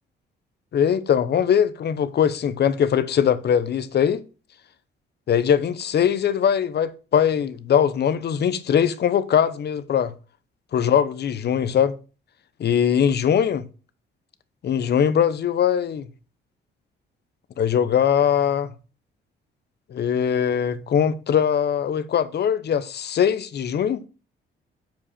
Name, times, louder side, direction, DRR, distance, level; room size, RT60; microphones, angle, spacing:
voice 1, 0.7-4.2 5.3-10.1 10.7-12.0 12.6-13.6 14.6-16.1 17.6-18.7 19.9-24.1, left 8 dB, 55° left, 1.0 m, -21 dB
7.5 x 5.0 x 7.3 m
cardioid pair, 90°, 20 cm